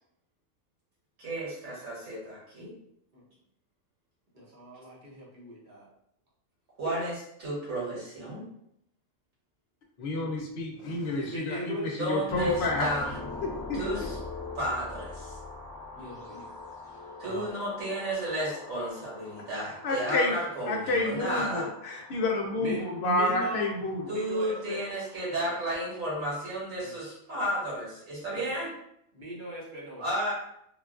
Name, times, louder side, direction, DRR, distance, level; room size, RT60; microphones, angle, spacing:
voice 1, 1.2-2.7 6.8-8.4 12.0-13.1 13.8-14.0 14.6-15.3 17.2-21.7 24.1-28.7 30.0-30.3, right 1 dB, 75° right, -8 dB, 2.0 m, -32 dB
voice 2, 4.3-5.9 10.1-10.4 11.1-11.9 15.9-16.5 16.8-16.9 17.2-17.5 22.6-23.7 24.1-24.8 25.3-25.5 26.8-27.0 28.3-28.5 29.1-30.0, right 1 dB, 40° right, -5 dB, 0.9 m, -39 dB
voice 3, 10.0-13.0 13.4-13.9 19.4-20.4 20.7-24.1, left 2 dB, 60° left, 1 dB, 0.8 m, -30 dB
sound 1, 12.3-26.1, left 2 dB, 5° left, 0.7 m, -44 dB
3.8 x 2.3 x 2.4 m, 0.75 s
omnidirectional pair, 1.4 m